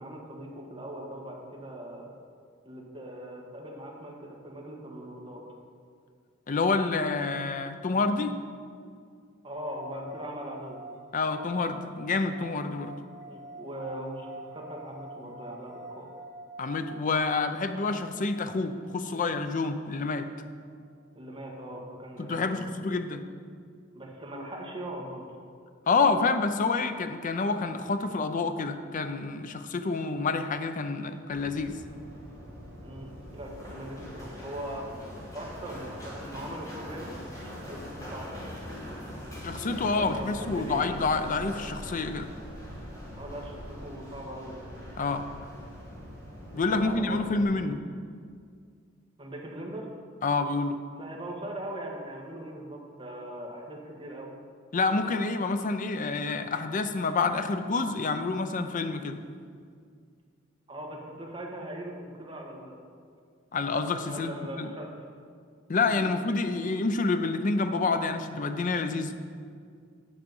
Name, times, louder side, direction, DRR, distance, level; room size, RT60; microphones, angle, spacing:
voice 1, 0.0-2.1 2.6-5.4 9.4-10.8 13.2-16.1 21.1-22.5 23.9-25.3 32.8-34.9 35.3-37.8 38.1-38.6 40.0-40.8 43.2-44.7 46.5-47.6 49.2-49.9 51.0-54.3 60.7-62.8 64.1-64.9 65.9-66.1, right 1 dB, 25° right, -1 dB, 1.4 m, -40 dB
voice 2, 6.5-8.3 11.1-12.9 16.6-20.3 22.2-23.2 25.9-31.7 39.4-42.3 45.0-45.3 46.5-47.8 50.2-50.8 54.7-59.2 63.5-64.3 64.6-64.7 65.7-69.1, left 3 dB, 40° left, 9 dB, 0.5 m, -28 dB
sound 1, 9.5-20.8, right 2 dB, 45° right, 1.8 m, -48 dB
Run, 31.3-47.4, equal, 20° left, 2.0 m, -42 dB
9.8 x 6.3 x 5.4 m, 2.1 s
head